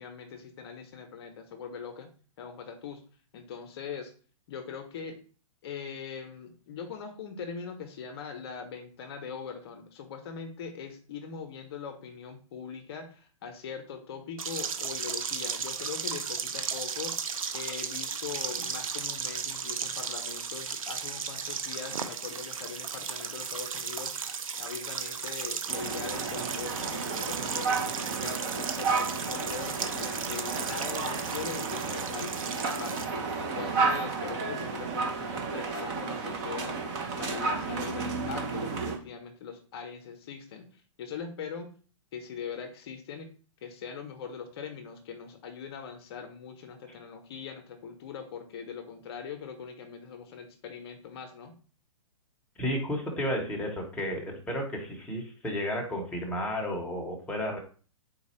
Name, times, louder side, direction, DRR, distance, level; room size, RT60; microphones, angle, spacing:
voice 1, 0.0-2.1 2.4-3.0 3.3-4.1 4.5-5.2 5.6-24.1 24.6-33.0 33.4-36.8 37.2-41.7 42.1-43.3 43.6-51.5, left 6 dB, 50° left, 6 dB, 0.7 m, -41 dB
sound 1, 14.4-33.1, right 6 dB, 85° right, 0.6 m, -35 dB
sound 2, 25.7-39.0, right 4 dB, 35° right, 0.9 m, -32 dB
voice 2, 52.6-57.6, equal, 5° left, 0 dB, 0.9 m, -32 dB
4.0 x 2.3 x 4.2 m, 0.40 s
hypercardioid pair, 135°, 17 cm